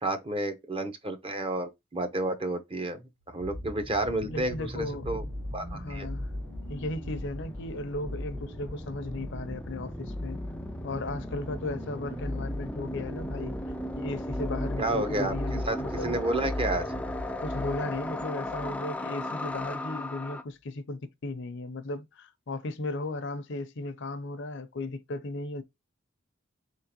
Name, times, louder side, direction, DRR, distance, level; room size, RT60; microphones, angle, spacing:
voice 1, 0.0-3.0 3.3-5.2 5.5-6.1 14.8-15.3 15.6-15.8 16.0-16.9, right 2 dB, 30° right, 0.8 m, -30 dB
sound 1, 3.2-18.8 19.6-19.7, left 1 dB, 55° right, 1.3 m, -38 dB
voice 2, 4.3-5.2 5.6-6.3 6.7-10.4 10.8-13.6 14.0-16.2 17.4-25.6, left 2 dB, 65° left, 0.6 m, -36 dB
sound 2, 5.2-20.4, left 1 dB, 5° left, 0.3 m, -38 dB
4.2 x 3.7 x 2.9 m
head